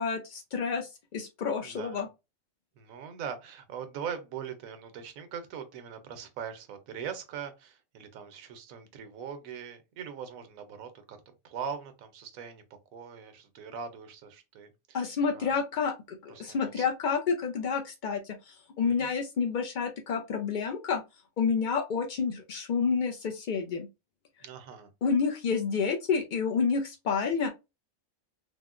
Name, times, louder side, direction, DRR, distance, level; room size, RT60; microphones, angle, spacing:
voice 1, 0.0-2.1 14.9-21.0 21.4-23.9 25.0-27.5, left 5 dB, 85° left, 0.4 m, -29 dB
voice 2, 1.6-2.1 2.8-11.2 11.4-15.5 16.3-16.9 18.8-19.1 24.4-24.9, right 7 dB, 80° right, 1.1 m, -41 dB
3.5 x 2.1 x 2.4 m
omnidirectional pair, 1.4 m